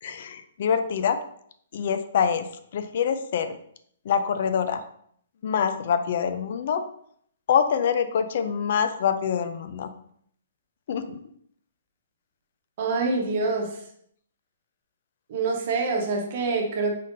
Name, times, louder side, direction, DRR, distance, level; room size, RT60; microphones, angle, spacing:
voice 1, 0.0-1.2 1.7-2.5 2.7-3.6 4.1-4.8 5.4-6.8 7.5-9.9 10.9-11.2, left 7 dB, 55° left, 10 dB, 0.4 m, -25 dB
voice 2, 12.8-13.8 15.3-16.9, right 4 dB, 45° right, 1 dB, 0.9 m, -26 dB
4.0 x 3.6 x 2.6 m, 0.65 s
hypercardioid pair, 155°, 0 cm